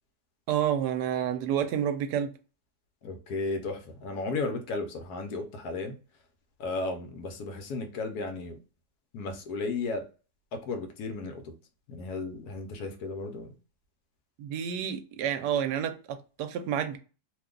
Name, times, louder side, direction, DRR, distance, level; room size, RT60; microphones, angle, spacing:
voice 1, 0.5-2.3 14.4-17.0, right 9 dB, 75° right, 1.1 m, -29 dB
voice 2, 3.0-5.9 6.6-8.6 9.1-10.0 10.5-11.5 11.9-13.5, left 3 dB, 70° left, 1.1 m, -34 dB
2.9 x 2.2 x 3.6 m
omnidirectional pair, 1.8 m